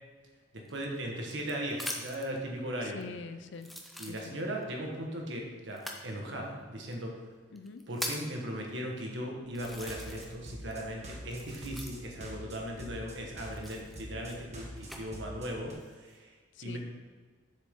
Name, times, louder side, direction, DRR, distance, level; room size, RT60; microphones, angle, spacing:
sound 1, 0.6-2.3 3.0-3.1 3.6-4.6 5.7-6.1 6.9-7.0 7.6-8.4 9.0-9.1 9.5-10.4 10.7-12.2 13.5-15.0 15.7-16.2, equal, ahead, 0.6 m, -42 dB
voice 1, 0.7-3.0 4.0-7.1 7.9-16.3 16.6-16.8, equal, 65° right, 0 dB, 1.4 m, -38 dB
voice 2, 2.8-3.7 4.1-4.4 7.5-7.8 16.5-16.8, left 4 dB, 65° left, 10 dB, 0.5 m, -44 dB
sound 2, 9.6-15.7, equal, 35° right, 1.2 m, -46 dB
7.3 x 6.7 x 3.7 m, 1.5 s
head